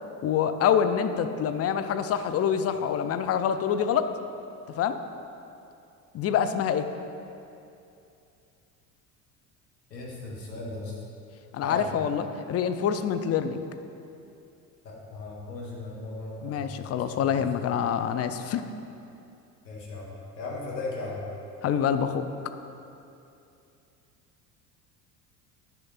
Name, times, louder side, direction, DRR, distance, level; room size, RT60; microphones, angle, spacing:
voice 1, 0.2-4.1 4.8-5.0 6.1-6.9 11.5-13.6 16.4-18.6 21.6-22.3, left 8 dB, 30° left, 10 dB, 0.5 m, -26 dB
voice 2, 9.9-10.9 11.6-11.9 14.8-16.7 17.1-17.7 19.6-21.2, left 3 dB, 85° left, -4 dB, 1.8 m, -37 dB
10.0 x 6.5 x 4.2 m, 2.7 s
hypercardioid pair, 65°, 49 cm